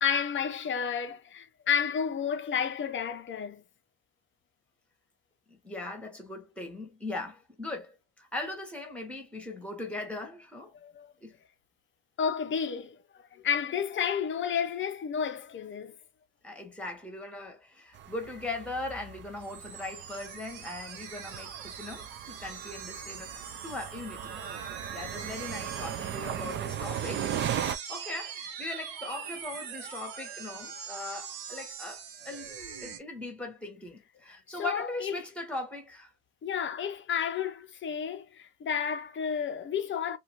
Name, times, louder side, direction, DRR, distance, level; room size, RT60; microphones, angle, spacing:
voice 1, 0.0-3.6 10.8-11.1 12.2-13.0 13.3-16.0 34.5-35.1 36.4-40.2, left 7 dB, 25° left, 0.6 m, -31 dB
voice 2, 5.5-10.7 11.2-11.3 16.4-23.3 23.6-24.4 24.9-32.5 32.8-36.1, left 2 dB, ahead, 1.1 m, -39 dB
sound 1, 17.9-27.8, right 9 dB, 25° right, 0.3 m, -38 dB
sound 2, 19.4-33.0, right 7 dB, 65° right, 1.2 m, -43 dB
2.7 x 2.4 x 3.0 m
supercardioid pair, 100°, 48 cm